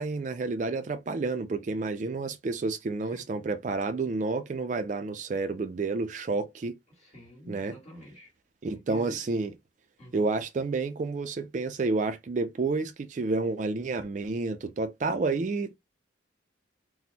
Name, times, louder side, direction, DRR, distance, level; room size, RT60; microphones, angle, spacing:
voice 1, 0.0-6.8 7.5-7.8 8.6-9.5 10.1-15.8, right 3 dB, 40° right, 0.3 m, -30 dB
voice 2, 6.9-8.3 8.7-9.3 10.0-10.3, left 1 dB, 35° left, 1.6 m, -48 dB
4.2 x 2.1 x 2.7 m
head